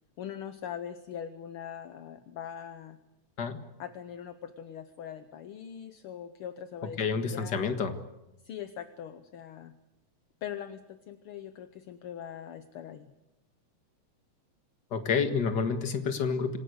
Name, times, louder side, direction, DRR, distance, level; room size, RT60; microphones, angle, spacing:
voice 1, 0.2-3.0 3.8-7.7 8.4-9.7 10.4-13.1, left 9 dB, 65° left, 10 dB, 1.5 m, -42 dB
voice 2, 7.0-7.9 14.9-16.6, left 5 dB, 40° left, 8 dB, 2.0 m, -29 dB
26.5 x 18.0 x 8.0 m, 0.94 s
omnidirectional pair, 3.3 m